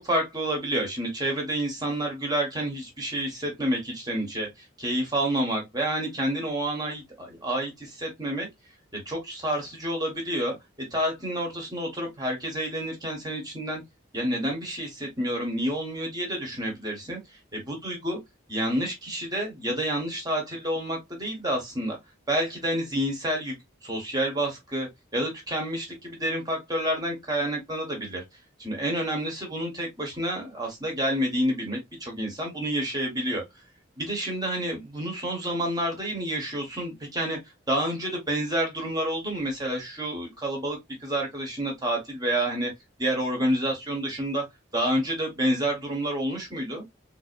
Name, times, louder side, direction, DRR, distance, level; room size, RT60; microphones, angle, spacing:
voice 1, 0.0-4.5 4.8-8.5 8.9-10.6 10.9-13.8 14.1-17.2 17.5-18.2 18.5-22.0 22.3-23.6 23.8-28.2 28.6-33.4 34.0-37.4 37.7-42.7 43.0-44.4 44.7-46.8, right 1 dB, 20° right, 1.1 m, -29 dB
3.7 x 2.7 x 2.4 m
head